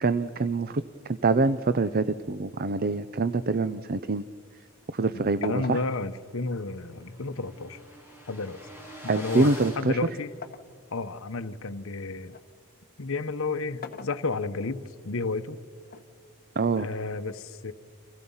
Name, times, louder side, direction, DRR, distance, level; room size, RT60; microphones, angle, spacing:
voice 1, 0.0-0.8 1.2-4.2 4.9-5.8 9.1-10.0 16.6-16.9, right 3 dB, 45° right, 13 dB, 0.7 m, -25 dB
sound 1, 4.1-5.1 5.4-7.4 8.2-10.8 11.3-12.5 13.6-14.7 15.9-16.9, left 6 dB, 45° left, 1.2 m, -45 dB
voice 2, 5.4-7.8 8.3-8.6 9.0-10.3 10.9-12.4 13.0-15.6 16.8-17.7, left 3 dB, 65° left, 11 dB, 1.0 m, -32 dB
sound 2, 6.1-11.0, equal, 10° right, 6.1 m, -46 dB
30.0 x 28.0 x 5.6 m, 2.1 s
head